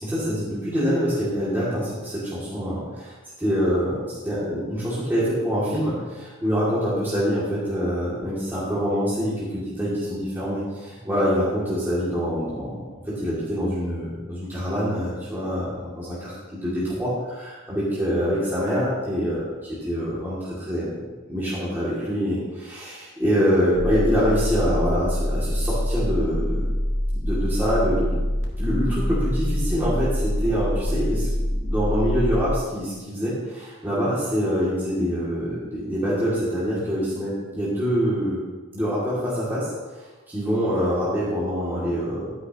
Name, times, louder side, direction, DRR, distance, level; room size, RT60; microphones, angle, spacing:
voice 1, 0.0-26.7 27.1-28.2 28.6-38.4 38.7-42.3, equal, 10° right, -10 dB, 2.6 m, -25 dB
sound 1, 23.7-32.6, equal, 60° left, 1.9 m, -25 dB
12.0 x 10.0 x 3.0 m, 1.2 s
head